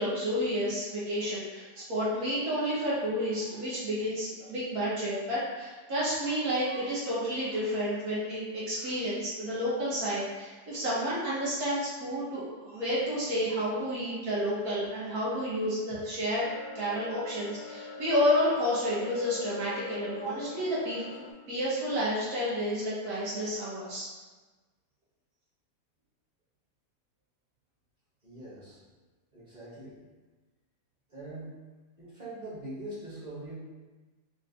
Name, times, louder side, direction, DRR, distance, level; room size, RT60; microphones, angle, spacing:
voice 1, 0.0-16.5 16.7-21.0 21.5-24.1, equal, 85° right, -9 dB, 1.7 m, -30 dB
sound 1, 16.3-21.3, left 2 dB, 65° left, 0.7 m, -42 dB
voice 2, 28.2-28.8 29.3-30.0 31.1-31.5 32.0-33.6, right 1 dB, 35° right, -9 dB, 0.9 m, -43 dB
3.8 x 2.4 x 2.6 m, 1.3 s
omnidirectional pair, 1.5 m